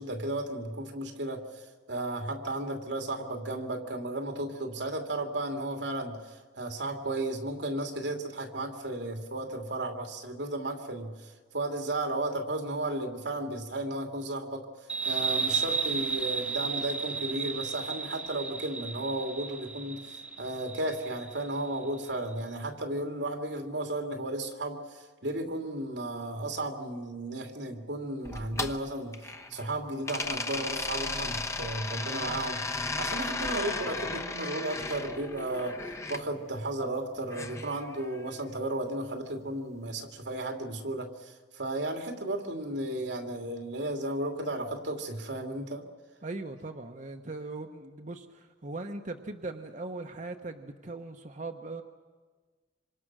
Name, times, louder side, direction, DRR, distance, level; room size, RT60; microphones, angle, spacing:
voice 1, 0.0-1.6 1.9-14.7 15.0-32.6 33.0-35.7 36.1-45.8, right 1 dB, 90° right, 4 dB, 2.8 m, -34 dB
sound 1, 14.9-22.1, right 5 dB, 5° right, 1.2 m, -33 dB
sound 2, 28.3-29.7 30.1-36.2 37.3-38.4, left 3 dB, 15° left, 0.9 m, -35 dB
voice 2, 46.2-51.8, right 2 dB, 45° right, 5 dB, 1.1 m, -39 dB
26.5 x 26.0 x 6.2 m, 1.4 s
head